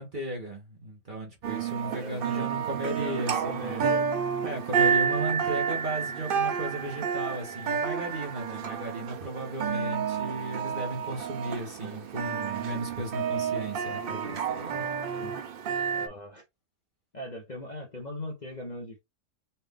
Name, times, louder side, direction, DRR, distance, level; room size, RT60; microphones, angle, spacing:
voice 1, 0.0-3.9 4.4-15.2, right 1 dB, 35° right, 1.1 m, -35 dB
sound 1, 1.4-16.1, right 7 dB, 80° right, 0.4 m, -30 dB
voice 2, 1.7-4.1 4.4-4.5 15.1-15.3 15.9-16.4 17.1-19.0, left 1 dB, 35° left, 0.9 m, -40 dB
4.3 x 2.5 x 3.5 m
omnidirectional pair, 1.6 m